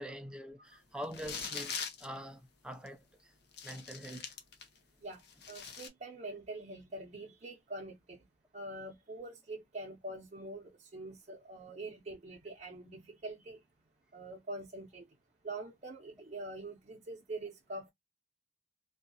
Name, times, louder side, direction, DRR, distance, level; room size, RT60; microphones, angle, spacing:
voice 1, 0.0-3.3 3.6-4.3, equal, 5° right, 0.4 m, -44 dB
sound 1, 1.0-2.1 2.9-3.0 3.5-4.8 5.1-5.9, left 6 dB, 65° left, 0.7 m, -42 dB
voice 2, 5.5-8.2 8.5-13.6 14.1-15.1 15.4-17.9, right 2 dB, 40° right, 0.7 m, -44 dB
2.6 x 2.4 x 2.6 m
head